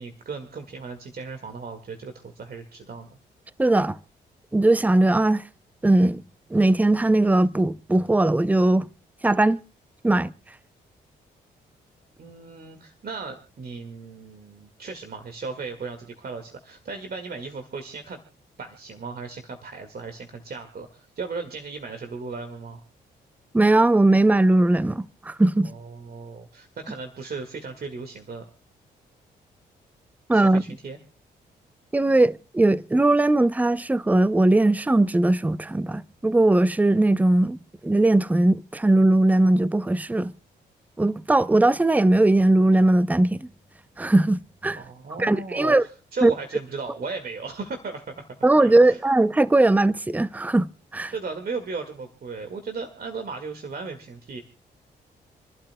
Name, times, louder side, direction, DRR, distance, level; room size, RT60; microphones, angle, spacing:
voice 1, 0.0-3.1 12.2-18.2 18.6-22.8 25.6-28.5 30.3-31.0 44.7-48.4 48.6-49.0 51.1-54.4, right 4 dB, 50° right, 1.9 m, -36 dB
voice 2, 3.6-4.0 4.5-5.4 5.8-6.2 6.5-8.9 9.2-9.6 10.0-10.3 23.5-25.7 30.3-30.6 31.9-37.6 37.8-40.3 41.0-43.5 44.0-44.8 45.2-45.8 46.2-46.3 48.4-51.1, right 2 dB, 10° right, 0.5 m, -19 dB
28.5 x 12.0 x 2.2 m
hypercardioid pair, 45°, 20 cm